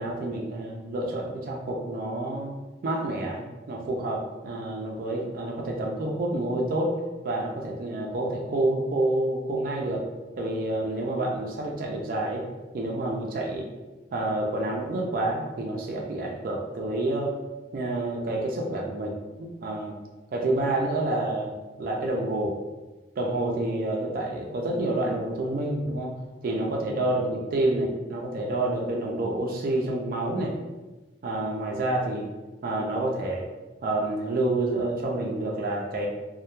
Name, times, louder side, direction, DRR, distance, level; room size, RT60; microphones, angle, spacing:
voice 1, 0.0-2.5 2.8-6.9 7.2-10.0 10.4-12.5 12.7-13.7 14.1-17.3 17.7-20.0 20.3-22.6 23.2-26.1 26.4-30.5 31.2-32.3 32.6-33.5 33.8-36.1, right 2 dB, 50° right, 0 dB, 0.3 m, -28 dB
2.1 x 2.1 x 2.9 m, 1.2 s
head